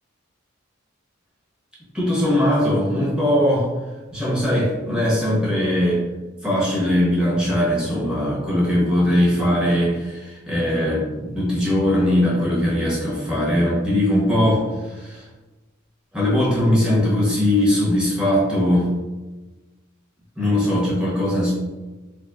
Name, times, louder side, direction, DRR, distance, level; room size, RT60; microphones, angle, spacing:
voice 1, 1.9-3.7 4.1-6.0 6.4-15.2 16.1-18.9 20.4-21.5, left 1 dB, 5° right, -7 dB, 1.1 m, -20 dB
3.5 x 2.5 x 3.4 m, 1.2 s
head